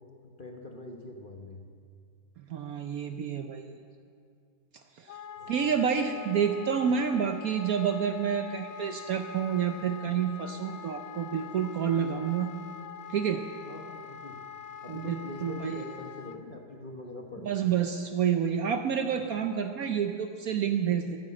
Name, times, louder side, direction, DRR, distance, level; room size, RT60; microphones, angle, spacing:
voice 1, 0.2-1.6 5.4-5.7 13.6-14.4 14.8-17.5 19.1-19.2, left 2 dB, 35° left, 2 dB, 1.1 m, -43 dB
voice 2, 2.5-3.7 5.0-5.1 5.5-12.5 13.1-13.4 14.9-15.8 17.4-21.2, right 7 dB, 65° right, 7 dB, 1.0 m, -29 dB
Wind instrument woodwind instrument, 5.1-16.4, left 8 dB, 75° left, 0.6 m, -44 dB
14.0 x 11.0 x 7.5 m, 2.3 s
omnidirectional pair, 2.0 m